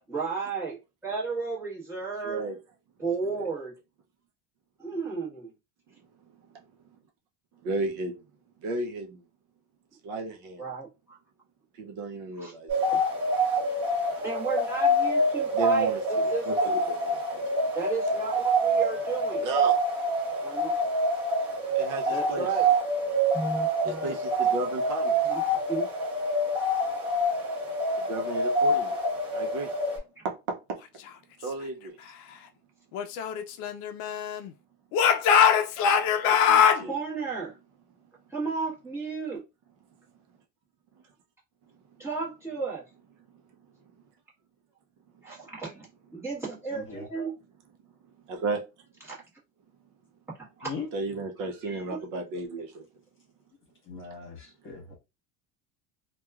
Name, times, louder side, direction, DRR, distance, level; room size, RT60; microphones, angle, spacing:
voice 1, 0.1-0.7 1.0-2.4 3.0-3.7 4.8-5.5 10.6-11.2 12.4-12.5 12.9-13.0 14.2-16.8 17.7-19.5 20.4-20.7 22.1-22.7 23.3-24.1 25.3-25.4 25.7-25.9 36.8-37.6 38.3-39.4 42.0-42.8 45.2-45.9 46.1-47.3 49.0-49.2 50.4-50.7 51.6-52.0, right 4 dB, 5° right, 1.2 m, -33 dB
voice 2, 2.2-2.6 3.2-3.5 6.2-6.6 7.6-8.2 8.6-9.2 10.0-10.7 11.7-12.9 15.5-17.7 19.4-19.8 21.7-22.5 23.8-25.3 28.0-29.0 29.3-29.7 30.2-30.8 31.4-32.0 36.1-36.9 41.7-42.0 43.3-43.4 43.8-43.9 45.1-45.2 48.2-48.6 50.9-52.9, right 3 dB, 60° right, 0.6 m, -34 dB
sound 1, 12.7-30.0, right 1 dB, 30° right, 1.5 m, -26 dB
Speech / Shout, 32.9-34.5 34.9-36.8, left 8 dB, 75° left, 0.5 m, -22 dB
voice 3, 46.7-47.0 50.6-50.9 53.9-55.0, left 5 dB, 35° left, 1.3 m, -39 dB
2.9 x 2.3 x 2.3 m
cardioid pair, 165°, 36 cm